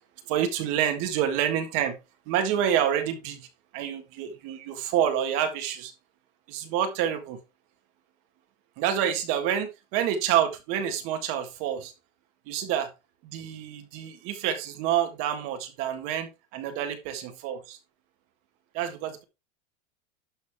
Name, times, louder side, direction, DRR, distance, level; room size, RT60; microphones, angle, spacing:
voice 1, 0.3-2.0 2.3-3.5 3.7-5.9 6.5-7.4 8.8-11.9 12.5-12.9 13.2-17.8 18.7-19.2, right 10 dB, 35° right, 1.7 m, -28 dB
11.5 x 6.5 x 3.6 m
supercardioid pair, 170°, 38 cm